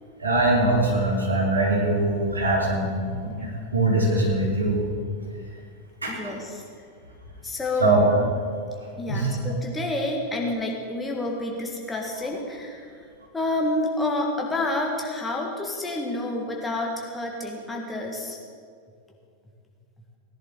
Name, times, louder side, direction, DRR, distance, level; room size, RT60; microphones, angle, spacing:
voice 1, 0.2-3.0 3.2-4.8 6.0-6.3 7.8-8.1 9.1-9.3, right 2 dB, 75° right, -4 dB, 3.9 m, -22 dB
voice 2, 6.1-6.6 7.4-8.3 9.0-12.9 13.3-18.4, left 2 dB, 10° left, -1 dB, 2.1 m, -29 dB
18.5 x 10.5 x 4.1 m, 2.2 s
figure-of-eight pair, 90°, 0 cm